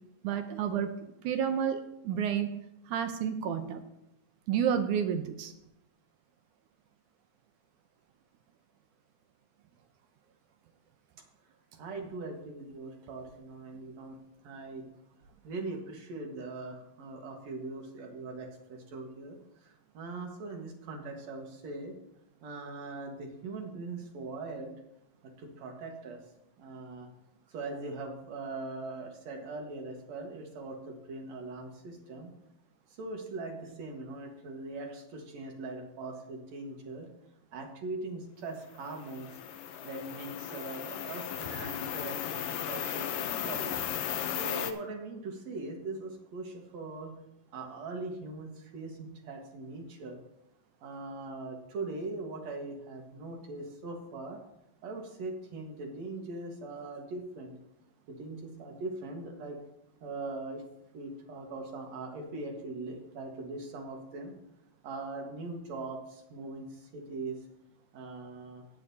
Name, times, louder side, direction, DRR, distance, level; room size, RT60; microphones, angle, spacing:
voice 1, 0.2-2.5 2.9-3.8 4.5-5.5, right 8 dB, 75° right, 7 dB, 1.9 m, -30 dB
voice 2, 11.8-14.2 14.4-14.9 15.4-19.4 19.6-21.9 22.4-24.7 25.4-26.2 26.6-27.1 27.5-32.3 33.0-37.1 37.5-39.4 39.8-43.7 44.2-47.1 47.5-50.2 50.8-54.4 54.8-57.5 58.1-59.6 60.0-60.6 60.9-64.3 64.8-67.4 67.9-68.6, right 3 dB, 55° right, 2 dB, 2.4 m, -41 dB
sound 1, 38.8-44.7, left 9 dB, 75° left, 2.2 m, -36 dB
17.5 x 9.7 x 2.8 m, 0.84 s
omnidirectional pair, 4.2 m